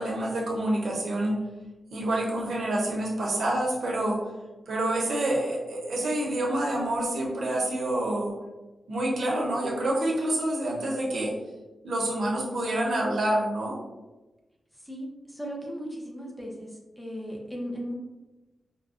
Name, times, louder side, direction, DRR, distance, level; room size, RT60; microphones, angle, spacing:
voice 1, 0.0-1.4 1.9-4.2 4.7-8.3 8.9-11.3 11.8-13.8, right 1 dB, 80° right, -3 dB, 0.8 m, -27 dB
voice 2, 14.9-16.7 17.0-17.9, equal, 5° left, -2 dB, 0.7 m, -36 dB
5.0 x 2.1 x 2.4 m, 1.1 s
wide cardioid pair, 130°, 0 cm